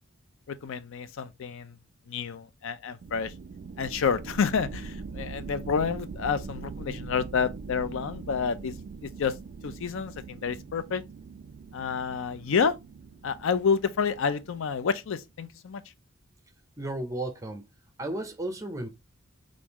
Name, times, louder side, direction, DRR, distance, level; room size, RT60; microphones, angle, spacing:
voice 1, 0.5-1.8 2.1-3.3 3.8-8.8 9.0-9.3 9.6-11.0 11.7-12.8 13.2-15.8, left 6 dB, 65° left, 0.4 m, -29 dB
sound 1, 3.0-15.3, right 4 dB, 50° right, 0.3 m, -42 dB
voice 2, 16.8-17.6 18.0-18.9, right 1 dB, 15° right, 0.6 m, -33 dB
3.6 x 2.6 x 2.9 m
head